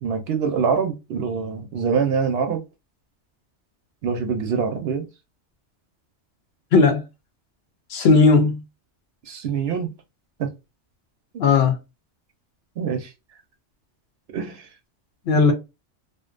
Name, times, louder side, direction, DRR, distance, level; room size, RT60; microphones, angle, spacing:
voice 1, 0.0-2.6 4.0-5.1 9.3-9.9 10.4-10.5 11.3-11.4 12.8-13.1 14.3-14.6, right 6 dB, 65° right, 0.7 m, -24 dB
voice 2, 6.7-7.0 7.9-8.6 11.4-11.8 15.3-15.5, left 4 dB, 65° left, 0.8 m, -16 dB
2.5 x 2.1 x 2.3 m
omnidirectional pair, 1.2 m